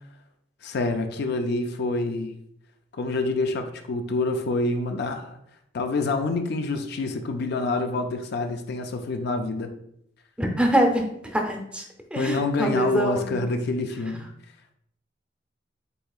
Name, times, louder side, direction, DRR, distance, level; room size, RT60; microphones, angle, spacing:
voice 1, 0.6-2.4 2.9-5.4 5.7-9.7 12.1-14.2, left 2 dB, 60° left, 6 dB, 0.4 m, -27 dB
voice 2, 10.4-11.8 12.1-13.4, right 1 dB, 5° right, 2 dB, 0.6 m, -24 dB
7.9 x 2.8 x 2.4 m, 0.73 s
head